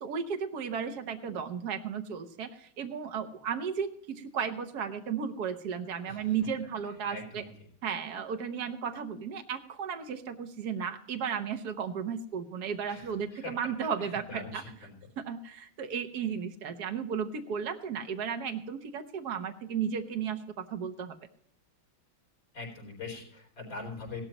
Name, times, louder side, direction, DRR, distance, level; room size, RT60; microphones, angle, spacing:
voice 1, 0.0-7.4 7.8-14.6 15.2-21.1, right 7 dB, 60° right, 6 dB, 1.5 m, -34 dB
voice 2, 7.1-7.5 12.9-13.5 14.0-14.9 22.5-24.2, left 3 dB, 65° left, -1 dB, 4.7 m, -42 dB
16.5 x 13.0 x 3.0 m, 0.66 s
omnidirectional pair, 2.1 m